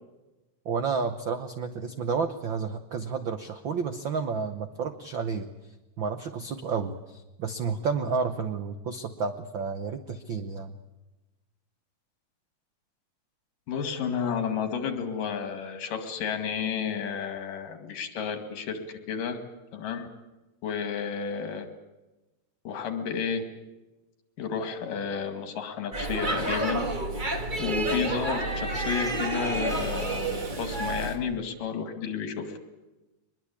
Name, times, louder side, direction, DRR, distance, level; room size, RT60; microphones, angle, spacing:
voice 1, 0.6-5.7 6.0-10.7, right 5 dB, 85° right, 9 dB, 1.0 m, -31 dB
voice 2, 13.7-19.4 19.7-20.1 20.6-21.7 22.7-23.4 24.4-26.9 27.6-32.5, left 6 dB, 85° left, 7 dB, 3.8 m, -31 dB
Speech / Shout / Subway metro underground, 25.9-31.2, right 2 dB, 25° right, 1.1 m, -29 dB
23.0 x 21.5 x 8.5 m, 1.1 s
omnidirectional pair, 3.7 m